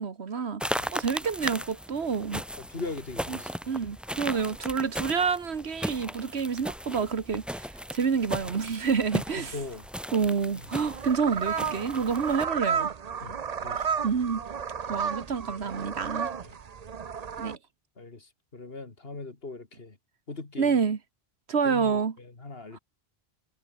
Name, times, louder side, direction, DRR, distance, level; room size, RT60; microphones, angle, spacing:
voice 1, 0.0-2.4 3.3-3.4 3.7-9.6 10.1-12.9 14.0-14.4 14.9-16.3 17.4-17.6 20.6-21.0 21.5-22.2 22.7-22.8, right 6 dB, 85° right, 1.7 m, -28 dB
sound 1, 0.6-12.4, equal, ahead, 1.2 m, -37 dB
voice 2, 2.6-3.5 9.4-9.9 13.2-13.9 16.4-16.6 18.0-20.0 20.3-20.8 21.6-22.8, left 3 dB, 65° left, 3.0 m, -40 dB
sound 2, 10.6-17.6, right 6 dB, 40° right, 0.8 m, -32 dB
omnidirectional pair, 1.1 m